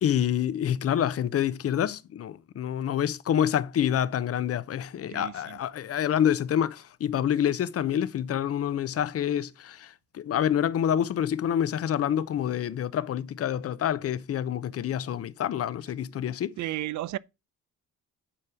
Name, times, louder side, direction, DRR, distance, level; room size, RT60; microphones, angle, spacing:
voice 1, 0.0-16.6, left 10 dB, 50° left, 0.7 m, -27 dB
voice 2, 5.1-5.6 16.6-17.2, right 15 dB, 70° right, 0.6 m, -33 dB
10.0 x 4.3 x 4.9 m
cardioid pair, 90°, 30 cm